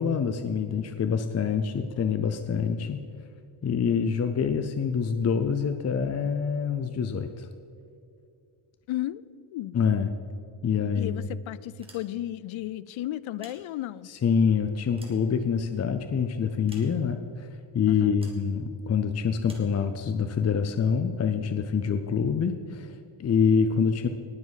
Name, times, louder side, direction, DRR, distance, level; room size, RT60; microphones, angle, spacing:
voice 1, 0.0-3.0 3.6-7.5 9.7-10.1 10.6-11.3 14.1-24.1, left 6 dB, 35° left, 8 dB, 0.5 m, -26 dB
voice 2, 8.9-9.2 9.5-9.8 10.9-14.1 17.9-18.2, left 14 dB, 80° left, 18 dB, 0.5 m, -34 dB
sound 1, 11.8-12.5 13.2-14.2 14.7-15.9 16.7-17.3 18.2-18.5 19.4-19.8, right 1 dB, 10° right, 1.8 m, -53 dB
19.5 x 7.2 x 4.1 m, 2.5 s
wide cardioid pair, 160°, 47 cm